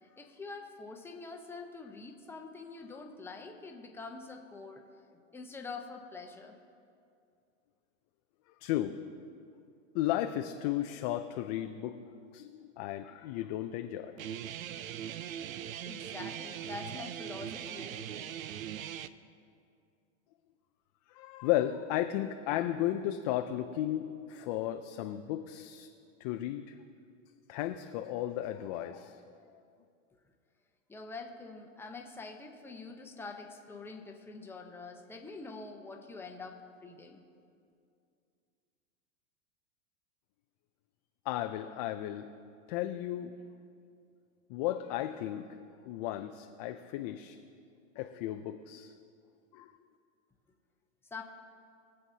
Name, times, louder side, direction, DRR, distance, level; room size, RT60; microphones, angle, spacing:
voice 1, 0.0-4.8 5.1-6.6 15.8-18.3 30.9-37.2 51.1-51.2, left 3 dB, 5° left, 2 dB, 0.8 m, -45 dB
voice 2, 8.6-8.9 9.9-14.2 21.1-25.9 26.2-26.8 27.5-29.2 41.3-42.3 42.7-43.3 44.5-45.5 45.9-47.4 48.0-48.9 49.5-49.7, left 13 dB, 35° left, 7 dB, 0.4 m, -34 dB
Guitar, 14.2-19.1, right 10 dB, 80° right, 0.6 m, -40 dB
23.0 x 7.7 x 2.8 m, 2.4 s
hypercardioid pair, 130°, 40 cm